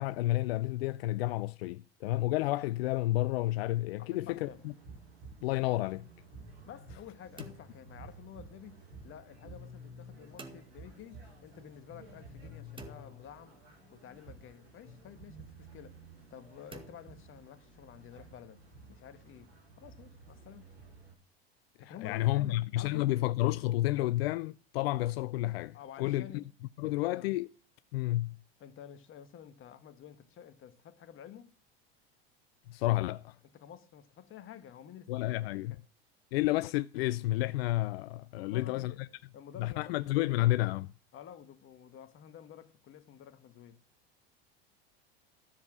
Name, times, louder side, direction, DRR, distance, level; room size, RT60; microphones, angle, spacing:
voice 1, 0.0-4.5 5.4-6.0 21.9-26.4 26.8-27.5 27.9-28.4 32.7-33.4 35.1-35.7 36.3-39.1 39.6-40.9, left 17 dB, 75° left, 0.5 m, -30 dB
voice 2, 4.0-4.6 6.7-13.6 13.9-16.0 16.3-20.7 21.8-23.2 25.7-26.5 26.8-27.3 28.6-31.5 33.5-35.8 38.3-40.4 41.1-43.8, left 9 dB, 40° left, 1.5 m, -51 dB
sound 1, 4.2-21.1, right 1 dB, 85° right, 6.8 m, -52 dB
sound 2, 7.4-8.7 10.4-11.4 12.8-14.0 16.7-17.9, right 3 dB, 15° right, 2.0 m, -53 dB
13.5 x 7.2 x 6.1 m
hypercardioid pair, 90°, 31 cm